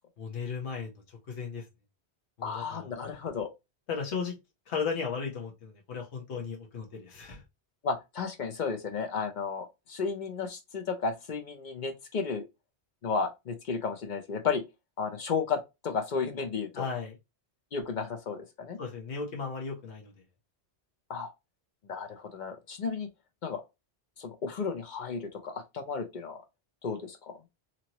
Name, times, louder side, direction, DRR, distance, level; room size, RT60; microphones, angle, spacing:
voice 1, 0.2-0.9 1.3-1.6 2.4-2.9 3.9-4.4 4.7-7.4 16.7-17.1 18.8-20.1, left 5 dB, 80° left, 1.2 m, -35 dB
voice 2, 2.4-3.5 7.8-12.4 13.0-14.6 15.0-16.9 17.7-18.8 21.1-21.3 21.8-23.1 23.4-23.6 24.2-26.4 26.8-27.4, left 5 dB, 50° left, 0.7 m, -33 dB
2.9 x 2.7 x 2.9 m
omnidirectional pair, 1.1 m